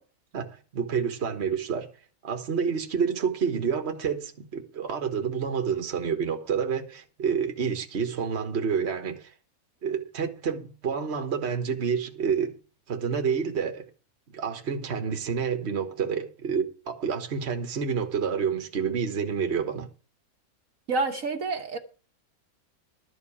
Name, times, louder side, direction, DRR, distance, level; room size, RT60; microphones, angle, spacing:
voice 1, 0.3-1.9 2.2-9.3 9.8-12.6 12.9-13.9 14.3-19.9, right 6 dB, 45° right, 1.5 m, -28 dB
voice 2, 20.9-21.8, right 3 dB, 60° right, 1.6 m, -28 dB
12.5 x 5.1 x 8.5 m
omnidirectional pair, 1.6 m